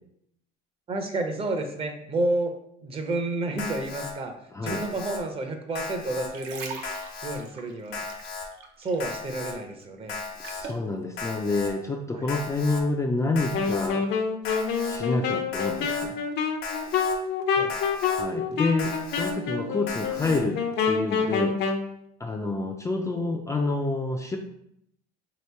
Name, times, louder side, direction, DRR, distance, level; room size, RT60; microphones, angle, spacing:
voice 1, 0.9-2.5 2.8-4.3 4.6-6.8 7.2-8.0 8.8-10.2 12.1-12.3 17.6-17.7, right 2 dB, 30° right, 5 dB, 0.7 m, -30 dB
Alarm, 3.6-4.1 4.7-5.2 5.7-6.3 6.8-7.4 7.9-8.5 9.0-9.5 10.1-10.6 11.2-11.7 12.3-12.8 13.4-13.9 14.4-15.0 15.5-16.1 16.6-17.2 17.7-18.2 18.8-19.3 19.9-20.4, left 4 dB, 80° left, 1.0 m, -36 dB
voice 2, 4.5-4.9 10.4-14.1 14.8-16.1 18.1-21.6 22.2-24.4, left 3 dB, 15° left, 1 dB, 0.4 m, -28 dB
sound 1, 6.2-9.2 9.5-10.9 11.5-11.6, right 5 dB, 65° right, 0.7 m, -41 dB
Wind instrument woodwind instrument, 13.5-21.9, left 5 dB, 60° left, 0.6 m, -27 dB
3.0 x 2.9 x 4.4 m, 0.73 s
supercardioid pair, 105°, 20 cm